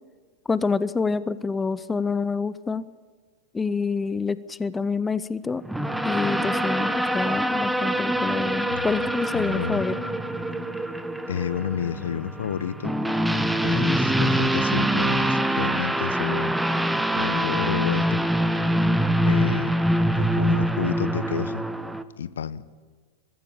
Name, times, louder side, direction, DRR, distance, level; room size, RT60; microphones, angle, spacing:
voice 1, 0.5-2.8 3.5-5.6 6.0-10.0 18.8-19.1, left 4 dB, 15° left, 17 dB, 0.7 m, -27 dB
sound 1, 5.6-22.0, right 1 dB, 5° right, 1.0 m, -24 dB
voice 2, 8.7-9.1 9.3-9.8 11.3-12.9 13.6-16.5 17.1-18.2 19.2-19.7 20.2-21.6 22.2-22.6, left 8 dB, 65° left, 16 dB, 0.9 m, -30 dB
22.5 x 14.5 x 8.6 m, 1.5 s
figure-of-eight pair, 90°, 0 cm